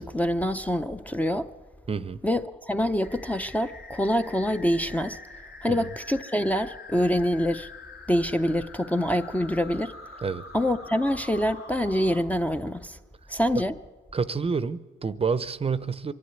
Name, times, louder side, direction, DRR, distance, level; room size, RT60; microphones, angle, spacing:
voice 1, 0.0-1.5 2.2-5.2 5.6-7.7 8.1-9.9 10.5-13.0 13.3-13.7, equal, 5° left, 0.6 m, -25 dB
voice 2, 1.9-2.2 5.7-5.8 10.2-10.4 14.1-16.1, right 5 dB, 30° right, 0.7 m, -28 dB
sound 1, 3.0-12.2, left 3 dB, 90° left, 3.3 m, -45 dB
24.0 x 11.5 x 9.4 m
cardioid pair, 90°, 20 cm